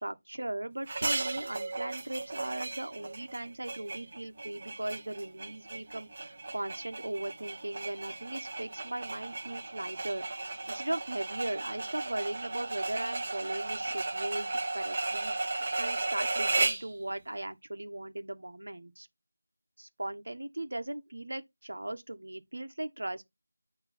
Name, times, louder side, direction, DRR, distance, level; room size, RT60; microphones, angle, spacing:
voice 1, 0.0-19.1 19.8-23.2, right 1 dB, 65° right, 1.2 m, -38 dB
sound 1, 0.9-16.9, right 2 dB, 30° right, 1.0 m, -35 dB
8.8 x 3.1 x 4.3 m
figure-of-eight pair, 175°, 0 cm